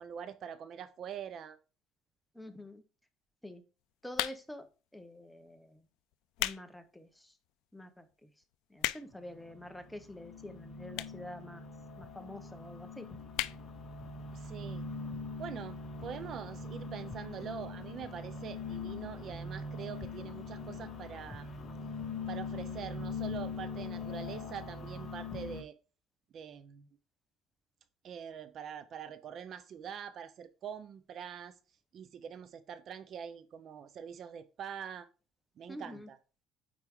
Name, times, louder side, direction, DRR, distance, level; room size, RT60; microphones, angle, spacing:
voice 1, 0.0-1.6 14.3-14.8 15.4-21.5 22.3-25.7 26.3-26.9 28.0-31.6 31.9-35.1 35.6-36.2, right 8 dB, 50° right, 0.6 m, -44 dB
voice 2, 2.3-2.8 3.4-3.6 4.0-4.7 4.9-5.8 6.4-7.3 7.7-8.0 8.7-11.6 12.0-13.1 35.7-36.1, left 1 dB, 5° left, 0.9 m, -47 dB
sound 1, 4.1-4.7 5.4-5.6 6.1-6.6 7.1-7.2 7.8-7.9 8.1-8.2 8.4-9.3 10.1-10.2 10.9-11.3 11.6-11.7 11.9-12.0 12.2-12.3 12.6-12.8 13.3-13.6 14.0-14.1 14.3-14.4, left 18 dB, 85° left, 0.4 m, -35 dB
sound 2, 9.1-25.6, left 4 dB, 40° left, 1.9 m, -42 dB
9.1 x 4.7 x 3.6 m
cardioid pair, 130°, 0 cm